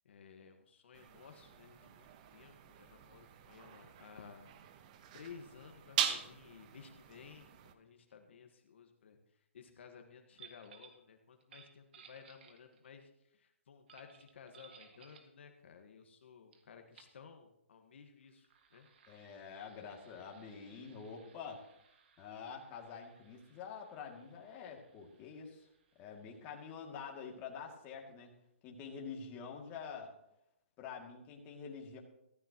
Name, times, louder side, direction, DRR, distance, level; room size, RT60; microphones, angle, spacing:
voice 1, 0.0-4.5 5.1-18.9, left 6 dB, 65° left, 4 dB, 1.6 m, -56 dB
sound 1, 0.9-7.7, right 10 dB, 35° right, 1.1 m, -42 dB
sound 2, 10.3-11.0 11.4-12.9 13.9-15.3 16.5-16.6 16.9-17.2 18.2-27.5, right 7 dB, 55° right, 1.9 m, -63 dB
voice 2, 19.1-21.6 22.2-25.7 26.0-28.3 28.6-30.1 30.8-32.0, left 6 dB, 25° left, 0 dB, 2.5 m, -47 dB
15.0 x 14.5 x 3.0 m, 0.82 s
hypercardioid pair, 150°, 7 cm